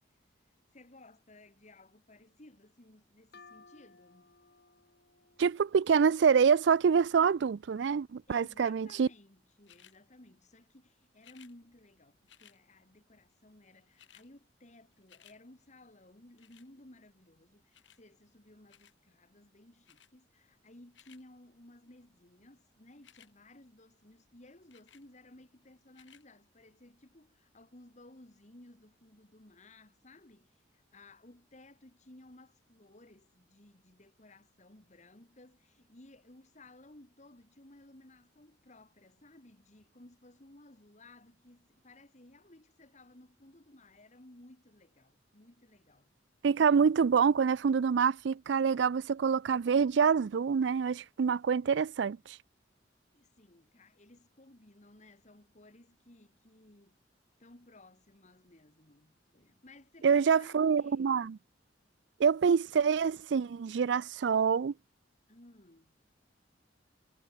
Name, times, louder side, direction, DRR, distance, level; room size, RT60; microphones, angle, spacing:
voice 1, 0.7-4.4 8.3-46.1 53.1-57.0 57.4-61.2 65.3-65.9, left 2 dB, 40° left, 2.2 m, -58 dB
sound 1, 3.3-6.9, left 4 dB, 60° left, 3.6 m, -60 dB
voice 2, 5.4-9.1 46.4-52.4 60.0-61.4 62.2-64.7, right 6 dB, 70° right, 0.4 m, -26 dB
sound 2, 9.6-10.0 11.2-11.5 12.3-12.6 13.5-13.6 13.8-14.3 14.7-15.4 16.4-16.7 17.7-18.0 18.7-19.0 19.9-20.1 20.7-21.2 22.9-23.3 24.7-25.1 25.9-26.2 26.9-27.0, left 10 dB, 75° left, 2.2 m, -60 dB
head